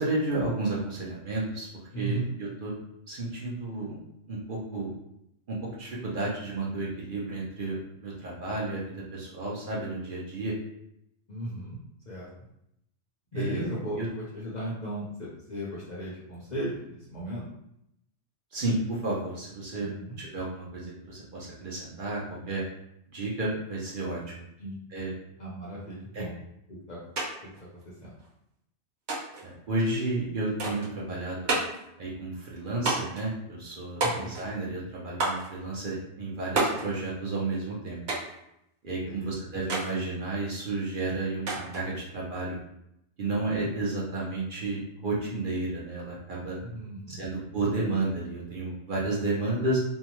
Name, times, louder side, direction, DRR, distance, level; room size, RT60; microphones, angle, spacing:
voice 1, 0.0-1.7 2.0-2.8 3.1-4.0 4.3-4.9 5.5-8.8 9.1-10.5 13.3-13.6 14.0-14.1 18.5-19.9 20.2-22.6 23.1-24.2 24.9-25.1 26.1-26.2 29.4-31.5 32.0-38.0 38.8-42.6 43.2-46.6 47.1-49.8, right 2 dB, 50° right, -5 dB, 0.7 m, -32 dB
voice 2, 1.9-2.3 11.3-11.8 12.1-12.3 13.3-17.4 19.8-20.2 24.6-24.8 25.4-26.4 26.7-27.0 27.4-27.7 28.0-28.1 34.0-34.3 39.0-39.3 46.6-47.3, right 1 dB, 50° left, -6 dB, 0.6 m, -36 dB
sound 1, 27.2-27.3 27.5-28.3 29.1-29.5 30.6-30.9 31.5-31.9 32.9-33.3 34.0-34.5 35.2-35.5 36.6-36.9 38.1-38.4 39.7-39.9 41.5-41.9, right 2 dB, 70° right, 1.1 m, -29 dB
2.7 x 2.2 x 2.9 m, 0.79 s
omnidirectional pair, 1.2 m